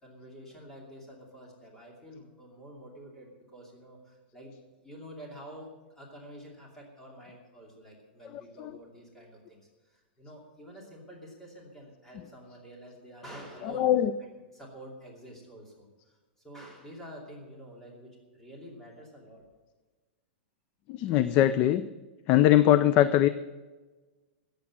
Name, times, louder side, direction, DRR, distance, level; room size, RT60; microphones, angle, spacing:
voice 1, 0.0-4.5 4.8-19.4, equal, 5° left, -2 dB, 2.7 m, -48 dB
voice 2, 13.6-14.1 20.9-21.8 22.3-23.3, left 12 dB, 25° left, 14 dB, 0.4 m, -21 dB
14.5 x 8.4 x 7.4 m, 1.3 s
supercardioid pair, 175°, 6 cm